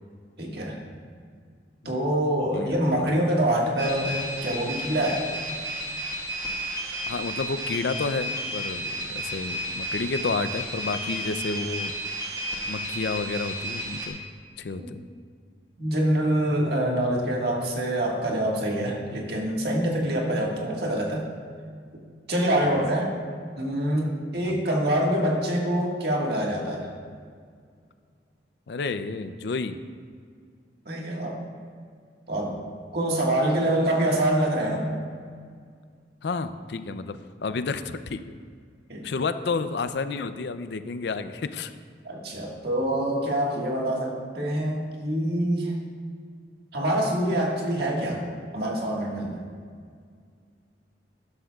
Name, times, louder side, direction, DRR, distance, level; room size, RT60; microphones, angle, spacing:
voice 1, 0.4-0.8 1.8-5.3 14.8-14.9 15.8-21.3 22.3-23.2 23.6-26.9 30.8-31.4 32.3-32.6 32.9-34.9 38.9-39.0 42.0-45.7 46.7-48.2 48.5-49.5, right 1 dB, 60° right, -1 dB, 1.7 m, -25 dB
voice 2, 2.5-3.2 4.0-4.2 7.1-11.9 12.6-14.2 14.6-15.0 22.6-22.9 24.5-24.6 28.7-29.8 36.2-38.4 39.0-41.7, left 4 dB, 65° left, 11 dB, 0.4 m, -31 dB
sound 1, 3.8-14.1, equal, 20° right, 1.8 m, -32 dB
13.0 x 11.5 x 2.4 m, 2.1 s
head